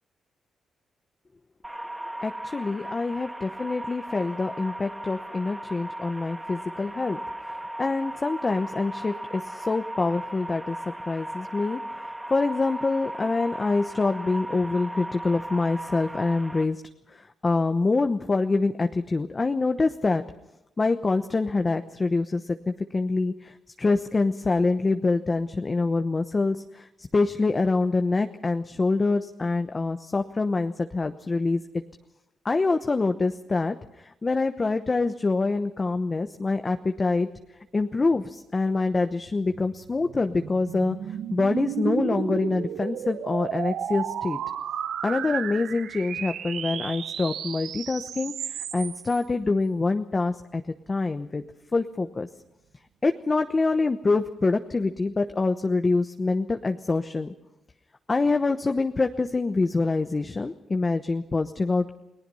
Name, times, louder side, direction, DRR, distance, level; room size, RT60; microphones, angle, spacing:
sound 1, 1.6-16.6, right 1 dB, 10° right, 1.9 m, -37 dB
voice 1, 2.2-7.2 7.8-16.8 17.1-20.2 20.8-31.8 32.4-37.3 37.7-41.0 41.3-44.4 45.0-50.6 50.9-51.4 51.7-52.3 53.0-57.3 58.1-62.0, left 3 dB, 30° left, 7 dB, 1.0 m, -25 dB
sound 2, 39.5-49.2, right 9 dB, 80° right, 0.9 m, -33 dB
29.5 x 18.5 x 5.6 m, 0.90 s
cardioid pair, 90°, 0 cm